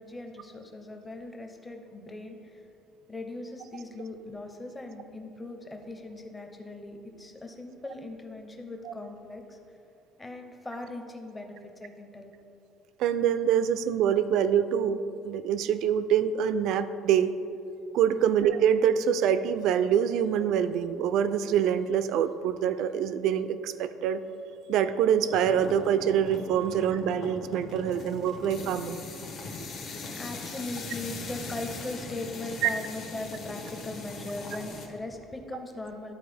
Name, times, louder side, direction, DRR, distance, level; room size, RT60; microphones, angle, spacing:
voice 1, 0.0-2.6 3.1-9.6 10.2-12.3 18.2-18.4 29.3-36.1, left 2 dB, 10° left, 4 dB, 0.6 m, -40 dB
voice 2, 13.0-15.0 15.2-17.3 17.9-24.2 24.7-29.1 29.6-29.7 32.6-32.7, right 9 dB, 60° right, 12 dB, 0.3 m, -25 dB
sound 1, 25.3-34.9, left 3 dB, 50° left, 1.0 m, -40 dB
11.5 x 4.2 x 3.4 m, 2.6 s
cardioid pair, 160°, 0 cm